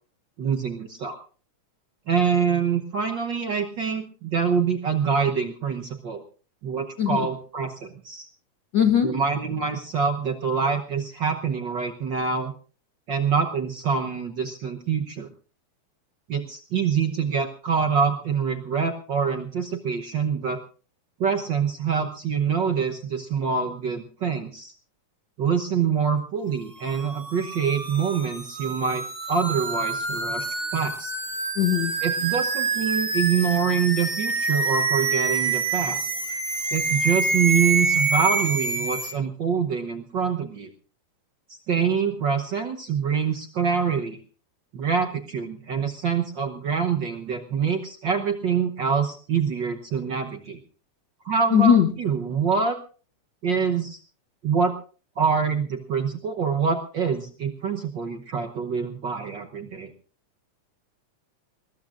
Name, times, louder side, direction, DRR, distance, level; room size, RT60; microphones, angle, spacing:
voice 1, 0.4-1.2 2.1-6.2 6.6-8.3 9.0-12.5 13.1-15.3 16.3-20.6 21.2-24.7 25.4-29.0 29.3-31.1 32.0-36.1 36.7-40.7 41.7-44.2 44.7-50.6 51.2-52.8 53.4-54.0 54.4-54.7 55.2-59.9, right 6 dB, 60° right, 4 dB, 1.2 m, -25 dB
voice 2, 8.7-9.2 31.6-31.9 51.5-51.9, left 9 dB, 70° left, 8 dB, 1.0 m, -19 dB
sound 1, 26.9-39.1, right 3 dB, 25° right, 1.6 m, -27 dB
21.0 x 19.5 x 2.5 m, 0.39 s
omnidirectional pair, 3.3 m